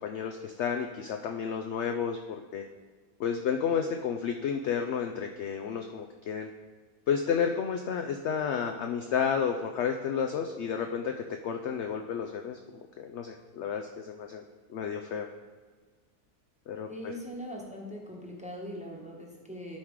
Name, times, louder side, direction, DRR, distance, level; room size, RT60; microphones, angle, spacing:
voice 1, 0.0-2.7 3.2-6.5 7.1-14.4 14.7-15.3 16.7-17.1, left 7 dB, 65° left, 4 dB, 0.7 m, -31 dB
voice 2, 16.9-19.8, equal, 5° right, -2 dB, 1.0 m, -41 dB
13.0 x 4.6 x 3.7 m, 1.4 s
omnidirectional pair, 1.6 m